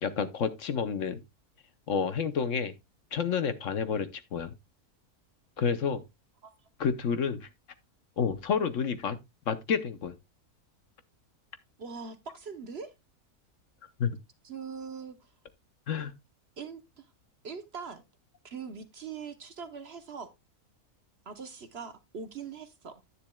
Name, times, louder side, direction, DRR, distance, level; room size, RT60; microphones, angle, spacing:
voice 1, 0.0-1.2 1.9-2.7 3.1-4.5 5.6-6.0 6.8-7.5 8.2-9.2 9.5-10.1 14.0-14.1 15.9-16.2, left 6 dB, 60° left, 1.1 m, -29 dB
voice 2, 11.8-12.9 14.4-15.3 16.6-17.1 17.4-18.0 18.4-20.3 21.3-23.0, right 5 dB, 50° right, 1.0 m, -42 dB
10.0 x 9.8 x 2.2 m
omnidirectional pair, 1.6 m